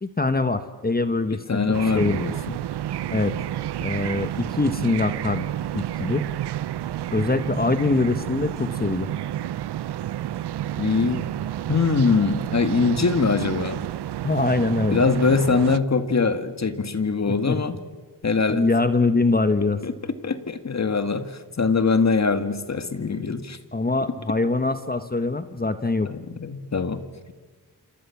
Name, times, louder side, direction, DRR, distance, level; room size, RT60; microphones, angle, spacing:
voice 1, 0.0-1.6 1.9-2.2 3.1-3.3 3.8-5.5 5.7-6.2 7.1-9.1 14.2-15.0 17.4-17.6 18.5-19.8 23.7-26.1, left 3 dB, 25° left, 10 dB, 1.5 m, -23 dB
voice 2, 1.5-2.6 7.5-7.6 10.8-11.3 11.7-13.8 14.9-17.8 18.2-18.6 19.8-19.9 20.2-23.6 26.0-27.3, left 4 dB, 40° left, 9 dB, 2.1 m, -23 dB
sound 1, 1.7-15.8, right 12 dB, 80° right, 0.8 m, -30 dB
28.0 x 27.0 x 7.3 m, 1.4 s
cardioid pair, 60°, 40 cm